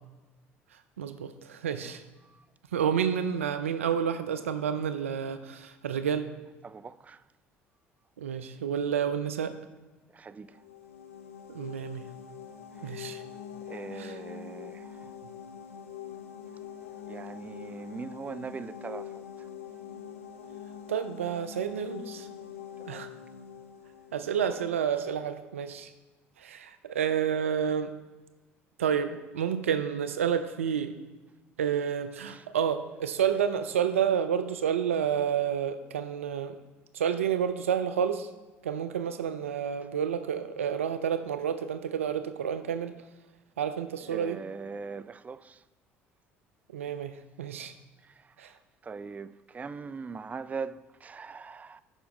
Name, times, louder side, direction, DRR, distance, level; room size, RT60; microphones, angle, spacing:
voice 1, 1.0-2.0 2.7-6.3 8.2-9.5 11.5-12.1 12.8-13.2 14.0-14.1 20.9-22.3 22.9-23.1 24.1-25.9 26.4-27.9 28.8-30.9 31.6-36.6 36.9-38.3 38.6-42.9 43.6-44.4 46.7-47.7 48.4-48.5, right 8 dB, 85° right, 0.4 m, -30 dB
voice 2, 6.6-7.2 10.1-10.6 12.8-13.0 13.7-15.1 17.1-19.5 22.8-23.1 24.4-24.6 32.2-32.5 44.0-45.6 48.0-48.5 48.8-51.8, right 5 dB, 20° right, 0.3 m, -41 dB
sound 1, 10.4-25.1, left 8 dB, 80° left, 0.5 m, -44 dB
6.3 x 5.6 x 5.0 m
figure-of-eight pair, 60°, 7 cm